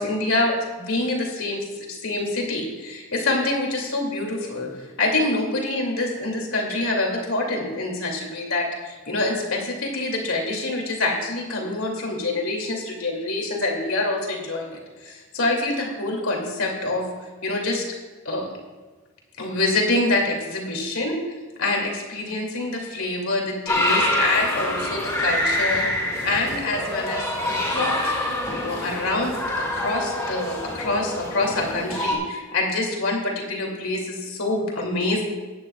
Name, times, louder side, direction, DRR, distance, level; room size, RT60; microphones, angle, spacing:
voice 1, 0.0-4.7 5.0-17.1 17.4-17.9 18.2-18.5 19.4-25.9 26.2-28.1 28.5-35.2, left 2 dB, 80° left, 0 dB, 2.6 m, -26 dB
sound 1, 23.7-32.1, left 1 dB, 15° left, 2.0 m, -26 dB
17.0 x 11.0 x 2.4 m, 1.3 s
head